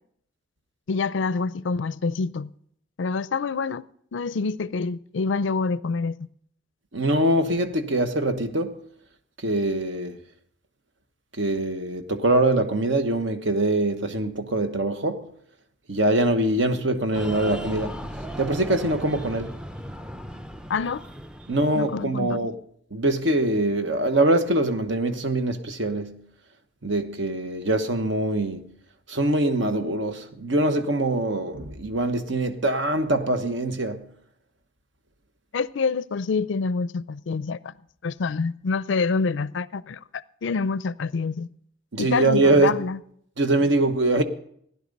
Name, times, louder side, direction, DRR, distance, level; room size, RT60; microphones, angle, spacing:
voice 1, 0.9-2.5 3.0-3.8 4.1-6.3 20.7-21.0 21.7-22.4 35.5-37.7 38.0-41.5 42.0-43.0 43.6-43.7, left 4 dB, 75° left, 0.4 m, -27 dB
voice 2, 6.9-8.8 9.4-10.2 11.4-15.3 15.9-18.0 18.4-19.6 21.5-22.5 22.9-26.2 26.8-28.6 29.1-34.1 41.9-42.8 43.4-44.2, right 2 dB, 70° right, 1.2 m, -23 dB
Breathing, 17.1-22.3, equal, 5° right, 0.4 m, -37 dB
15.5 x 10.5 x 5.3 m
head